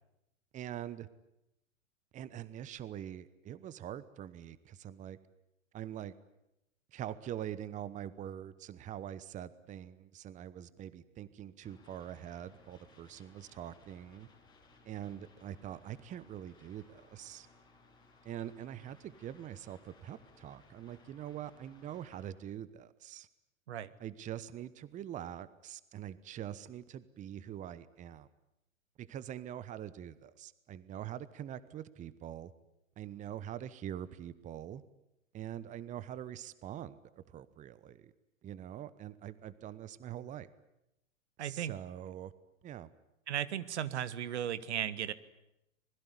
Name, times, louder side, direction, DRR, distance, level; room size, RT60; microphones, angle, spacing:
voice 1, 0.5-1.1 2.1-5.2 5.7-6.1 6.9-14.3 14.8-17.5 18.2-23.3 24.0-28.3 29.0-32.5 33.0-34.8 35.3-38.1 38.4-40.5 41.4-42.3 42.6-42.9, right 11 dB, 20° right, 17 dB, 1.1 m, -44 dB
sound 1, 11.6-22.3, left 3 dB, 10° left, 7.2 m, -63 dB
voice 2, 41.4-41.7 43.3-45.1, right 10 dB, 60° right, 15 dB, 1.7 m, -36 dB
26.0 x 21.0 x 9.9 m, 0.87 s
figure-of-eight pair, 105°, 38 cm